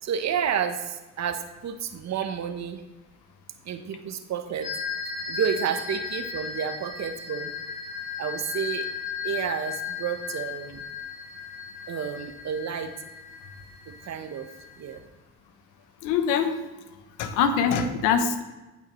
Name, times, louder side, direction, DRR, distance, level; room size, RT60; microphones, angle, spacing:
voice 1, 0.0-2.8 3.6-4.7 5.3-7.5 8.2-8.9 9.2-10.8 11.9-12.9 13.9-14.5 14.8-15.0, right 8 dB, 60° right, 8 dB, 1.1 m, -30 dB
sound 1, 4.6-14.9, left 6 dB, 60° left, 2.4 m, -36 dB
voice 2, 16.0-16.6 17.2-18.4, left 6 dB, 90° left, 9 dB, 0.9 m, -23 dB
15.5 x 5.6 x 3.1 m, 1.1 s
supercardioid pair, 55°, 31 cm